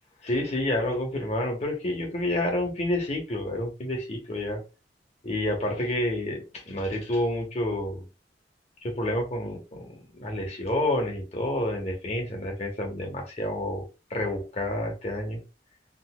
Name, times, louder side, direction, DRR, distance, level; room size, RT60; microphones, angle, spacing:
voice 1, 0.2-4.6 5.2-8.0 8.8-15.4, left 1 dB, 40° left, 1.0 m, -29 dB
3.9 x 2.5 x 2.3 m
head